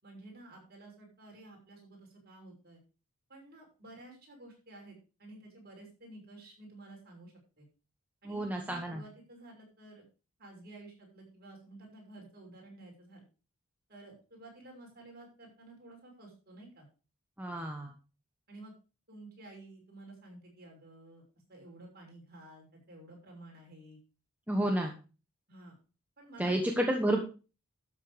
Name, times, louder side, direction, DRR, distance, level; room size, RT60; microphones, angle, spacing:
voice 1, 0.0-2.8 3.3-7.7 8.2-10.0 10.4-13.2 13.9-16.9 18.5-18.7 19.1-21.2 21.5-24.0 25.5-25.8 26.2-26.8, right 2 dB, 45° right, 0 dB, 6.3 m, -52 dB
voice 2, 8.3-9.0 17.4-17.9 24.5-24.9 26.4-27.2, right 1 dB, 5° right, 2 dB, 1.2 m, -30 dB
12.5 x 7.5 x 5.1 m, 0.34 s
head